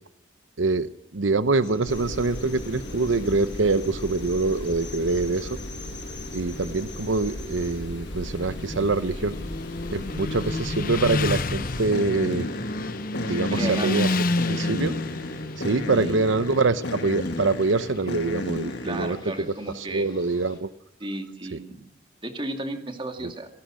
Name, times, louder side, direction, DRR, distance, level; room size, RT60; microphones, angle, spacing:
voice 1, 0.6-5.6 6.3-9.4 9.9-12.5 13.2-14.1 14.5-15.0 15.6-19.3 19.7-20.7 21.5-21.6 23.2-23.3, right 3 dB, 80° right, 12 dB, 0.8 m, -25 dB
sound 1, 1.6-20.6, equal, 20° left, 7.7 m, -42 dB
sound 2, 1.9-19.3, left 1 dB, 65° left, 2.1 m, -35 dB
Motorcycle, 8.2-18.0, left 2 dB, 45° left, 0.8 m, -30 dB
voice 2, 13.5-14.1 16.0-16.1 18.8-20.1 21.0-21.8 22.2-23.5, right 1 dB, 25° right, 4 dB, 2.5 m, -33 dB
27.5 x 17.5 x 6.4 m, 0.72 s
head